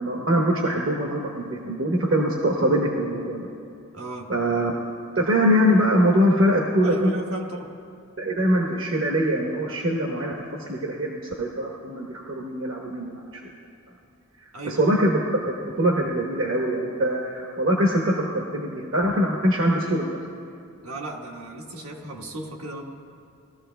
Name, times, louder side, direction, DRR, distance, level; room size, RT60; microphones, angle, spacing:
voice 1, 0.0-3.5 4.3-4.7 5.2-6.9 8.2-13.4 14.6-15.2 15.6-20.2, equal, 65° right, -1 dB, 1.0 m, -23 dB
voice 2, 3.9-4.3 6.8-7.7 14.5-14.8 20.8-22.8, right 1 dB, 90° right, 0 dB, 1.4 m, -34 dB
20.5 x 14.0 x 2.2 m, 2.5 s
head